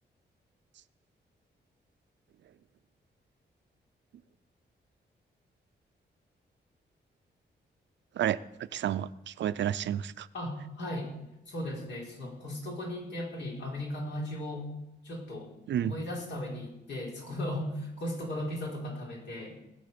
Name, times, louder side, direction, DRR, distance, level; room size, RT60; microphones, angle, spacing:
voice 1, 8.7-10.3 15.7-15.9, right 10 dB, 85° right, 15 dB, 0.6 m, -30 dB
voice 2, 10.3-11.1 11.5-14.7 15.0-15.5 15.8-19.6, left 1 dB, 80° left, -1 dB, 4.3 m, -36 dB
19.5 x 7.3 x 6.9 m, 0.90 s
wide cardioid pair, 120°, 18 cm